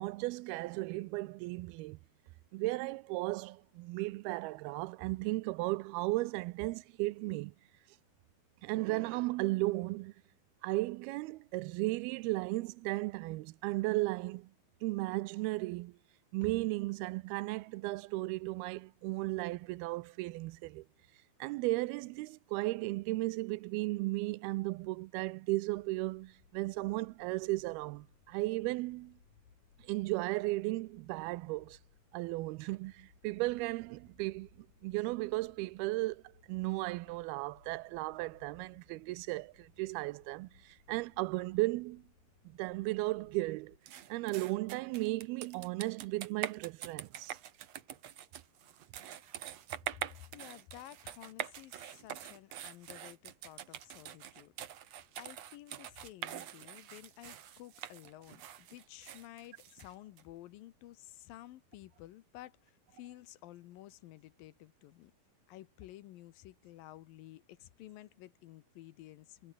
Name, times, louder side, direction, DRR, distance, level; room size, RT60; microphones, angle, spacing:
voice 1, 0.0-2.0 2.5-7.5 8.6-10.1 10.6-14.5 14.8-16.0 16.3-20.9 21.4-29.2 29.8-31.8 32.1-42.0 42.5-43.8 44.1-47.4, right 21 dB, 90° right, 2.6 m, -35 dB
sound 1, 25.8-43.8, left 6 dB, 55° left, 5.2 m, -66 dB
sound 2, 43.9-60.2, right 10 dB, 55° right, 2.1 m, -45 dB
voice 2, 50.3-54.5 55.2-65.1 65.5-69.5, left 15 dB, 75° left, 2.5 m, -53 dB
omnidirectional pair, 4.4 m